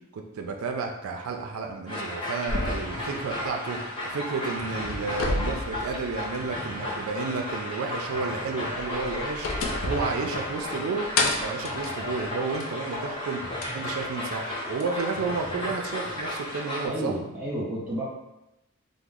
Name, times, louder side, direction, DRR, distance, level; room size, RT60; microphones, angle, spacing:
voice 1, 0.1-3.8 4.0-9.5 9.8-11.1 11.4-13.4 13.7-17.1, right 4 dB, 85° right, 3 dB, 0.4 m, -31 dB
sound 1, 1.9-16.9, left 1 dB, 25° left, 0.7 m, -34 dB
sound 2, 2.5-4.2 4.6-6.6 7.0-7.1 8.7-10.8 11.2-12.8 13.6-13.7 14.8-14.9, left 2 dB, 70° left, 0.4 m, -31 dB
voice 2, 16.8-18.0, right 1 dB, 5° right, -10 dB, 1.3 m, -31 dB
3.0 x 2.0 x 3.6 m, 0.88 s
head